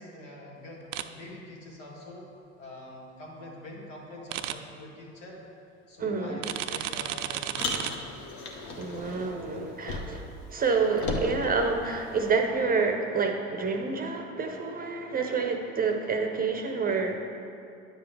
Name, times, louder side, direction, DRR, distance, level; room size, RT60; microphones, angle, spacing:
voice 1, 0.0-2.3 2.6-5.4 5.9-8.0, left 1 dB, 70° left, -2 dB, 1.8 m, -44 dB
sound 1, 0.9-1.0 4.3-4.5 6.4-7.9, right 12 dB, 70° right, 0.5 m, -32 dB
voice 2, 6.0-6.4 8.8-10.2 10.5-17.2, right 4 dB, 20° right, 4 dB, 0.7 m, -28 dB
Car, 7.5-10.4 10.6-12.4, left 3 dB, 45° left, 1.2 m, -36 dB
9.9 x 6.9 x 3.3 m, 2.6 s
figure-of-eight pair, 70°, 39 cm